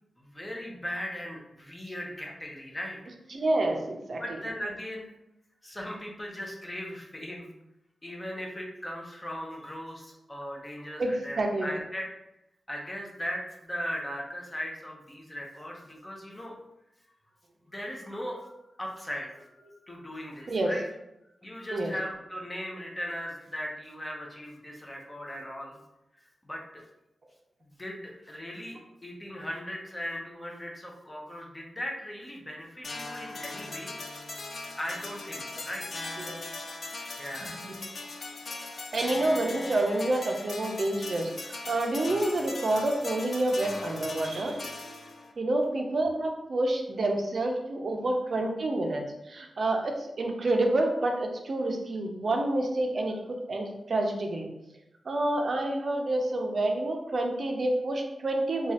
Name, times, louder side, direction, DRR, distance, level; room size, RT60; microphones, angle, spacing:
voice 1, 0.2-3.1 4.2-5.1 5.6-7.5 8.0-12.1 12.7-16.5 17.7-20.8 21.4-25.8 26.2-26.8 27.6-34.0 34.8-35.8 37.2-37.6, equal, 20° left, -1 dB, 0.6 m, -38 dB
voice 2, 3.3-4.2 11.0-11.1 11.4-11.7 20.5-20.7 21.7-21.9 36.3-36.4 37.4-37.5 38.9-41.3 41.7-44.6 45.4-49.0 49.3-54.5 55.1-58.7, right 2 dB, 55° right, 3 dB, 0.5 m, -28 dB
sound 1, 32.8-45.3, left 2 dB, 55° left, 0.3 m, -39 dB
3.0 x 2.3 x 2.7 m, 0.90 s
wide cardioid pair, 100°, 0 cm